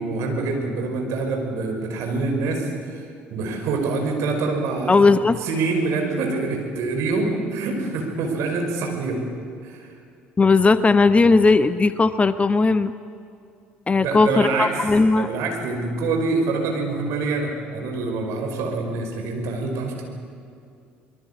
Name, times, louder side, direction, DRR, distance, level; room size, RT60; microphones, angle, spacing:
voice 1, 0.0-3.1 3.3-5.0 5.4-9.2 9.6-9.9 14.0-14.8 15.1-20.0, right 3 dB, 55° right, 3 dB, 5.3 m, -25 dB
voice 2, 4.9-5.4 10.4-12.9 13.9-15.3, left 3 dB, 20° left, 13 dB, 0.9 m, -17 dB
25.0 x 21.5 x 8.4 m, 2.4 s
figure-of-eight pair, 55°, 6 cm